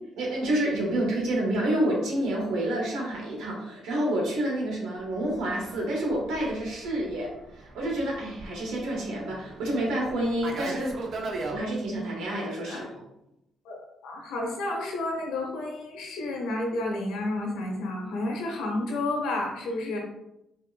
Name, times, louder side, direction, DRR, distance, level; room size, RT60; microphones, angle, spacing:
voice 1, 0.1-10.9 11.5-13.0, right 1 dB, 85° right, -2 dB, 1.5 m, -28 dB
Fixed-wing aircraft airplane, 5.1-11.6, right 2 dB, 60° right, 0.7 m, -38 dB
voice 2, 13.6-20.0, left 2 dB, 85° left, 0 dB, 1.2 m, -31 dB
5.1 x 2.9 x 2.4 m, 0.85 s
cardioid pair, 90°, 0 cm